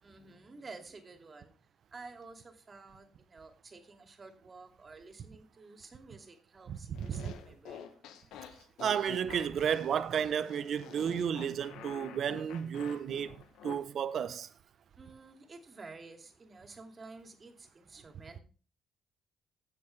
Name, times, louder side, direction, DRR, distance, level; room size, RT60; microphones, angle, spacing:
voice 1, 0.0-1.5 1.9-8.0 15.0-18.4, right 3 dB, 40° right, 2.3 m, -51 dB
voice 2, 6.7-7.3 8.8-13.4 13.6-14.5, right 8 dB, 65° right, 0.8 m, -32 dB
sound 1, 6.9-13.8, left 8 dB, 85° left, 1.0 m, -49 dB
15.5 x 6.7 x 3.3 m
supercardioid pair, 65°, 0 cm